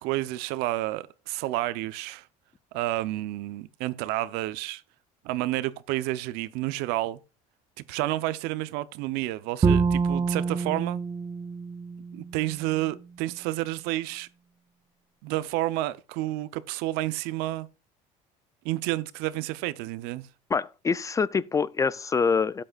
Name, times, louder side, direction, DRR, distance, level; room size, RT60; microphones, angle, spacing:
voice 1, 0.0-2.2 2.7-4.8 5.2-7.2 7.9-11.0 12.1-14.3 15.2-17.7 18.6-20.3, right 16 dB, 75° right, 0.8 m, -30 dB
Bowed string instrument, 9.6-12.7, right 5 dB, 25° right, 1.0 m, -26 dB
voice 2, 20.5-22.6, left 5 dB, 20° left, 0.4 m, -25 dB
13.0 x 8.7 x 2.4 m
supercardioid pair, 110°, 16 cm